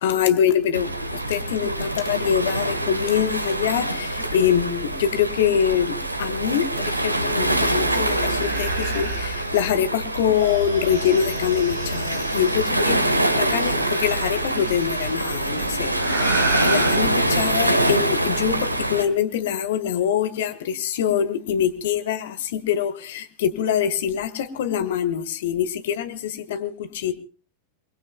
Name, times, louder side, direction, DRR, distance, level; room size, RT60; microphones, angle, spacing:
voice 1, 0.0-16.3 16.6-26.7 27.0-27.1, left 9 dB, 55° left, 1.5 m, -24 dB
Waves surf, 0.7-19.0, right 1 dB, 85° right, 1.3 m, -25 dB
sound 1, 6.8-6.9 7.2-9.6 10.3-12.7 13.6-15.1 15.9-17.0, right 4 dB, 55° right, 6.2 m, -32 dB
sound 2, 10.4-14.3 14.8-15.1 15.5-15.6, left 4 dB, 5° left, 4.6 m, -44 dB
28.0 x 21.0 x 2.3 m
figure-of-eight pair, 90°, 0 cm